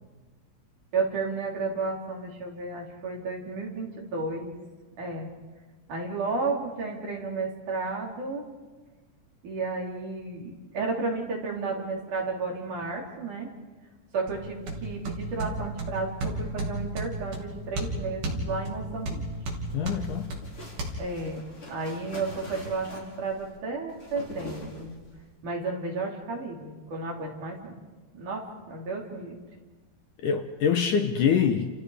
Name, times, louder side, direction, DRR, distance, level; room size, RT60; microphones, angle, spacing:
voice 1, 0.9-4.6 5.0-5.3 5.9-8.4 9.4-13.5 14.1-19.2 21.0-24.9 25.4-27.8 28.1-29.4, right 3 dB, 55° right, 5.1 m, -32 dB
sound 1, 14.3-20.9, right 1 dB, 75° right, 5.0 m, -34 dB
sound 2, 19.3-25.3, left 1 dB, 30° left, 5.6 m, -44 dB
voice 2, 19.7-20.3 30.2-31.7, left 7 dB, 70° left, 2.3 m, -24 dB
29.5 x 29.0 x 5.1 m
omnidirectional pair, 4.4 m